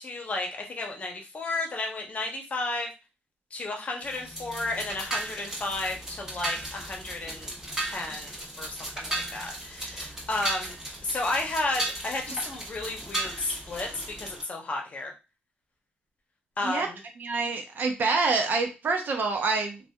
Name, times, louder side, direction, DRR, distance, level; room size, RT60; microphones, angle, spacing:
voice 1, 0.0-2.9 3.5-7.5 7.8-10.8 11.0-15.1 16.6-17.0, left 2 dB, 40° left, 1 dB, 0.9 m, -33 dB
sound 1, 4.0-14.4, right 1 dB, 15° right, 1.4 m, -36 dB
voice 2, 17.2-19.8, right 4 dB, 55° right, 4 dB, 0.7 m, -26 dB
2.6 x 2.3 x 2.3 m, 0.28 s
cardioid pair, 85°, 4 cm